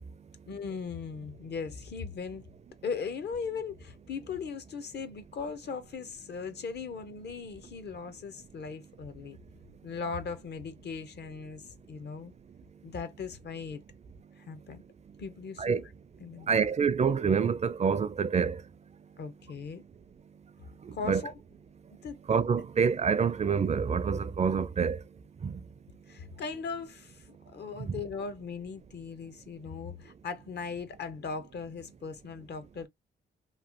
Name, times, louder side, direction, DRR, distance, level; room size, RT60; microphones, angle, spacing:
voice 1, 0.5-2.5 2.8-9.4 9.8-12.3 12.8-13.8 14.4-14.8 15.2-15.8 16.2-16.5 19.2-19.8 20.9-21.3 22.0-22.2 26.1-32.9, left 5 dB, 60° left, 0.7 m, -38 dB
voice 2, 16.5-18.6 20.8-21.2 22.3-25.0 25.4-25.6, right 6 dB, 35° right, 0.4 m, -27 dB
3.1 x 2.0 x 2.8 m
cardioid pair, 85°, 19 cm